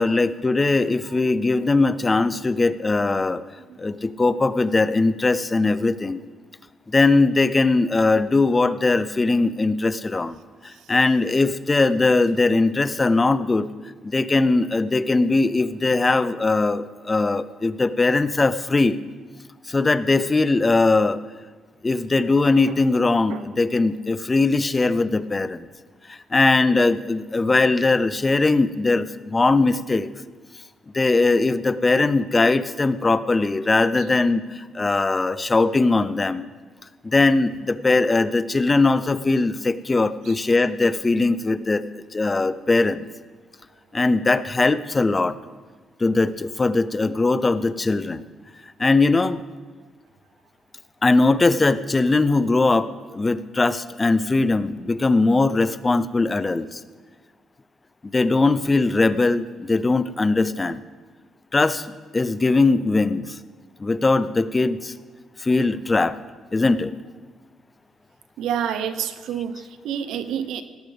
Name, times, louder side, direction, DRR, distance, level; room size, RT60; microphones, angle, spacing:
voice 1, 0.0-3.4 3.8-6.2 6.9-13.7 14.0-19.0 19.7-21.2 21.8-25.7 26.1-30.1 30.9-36.5 37.0-41.8 42.1-43.1 43.9-45.4 46.0-48.2 48.8-49.4 51.0-56.8 58.1-60.8 61.5-63.4 63.8-64.9 65.4-66.2 66.5-66.9, left 3 dB, 25° left, 15 dB, 0.6 m, -20 dB
voice 2, 68.4-70.6, right 9 dB, 85° right, 10 dB, 0.9 m, -28 dB
17.5 x 13.0 x 3.5 m, 1.4 s
cardioid pair, 90°, 0 cm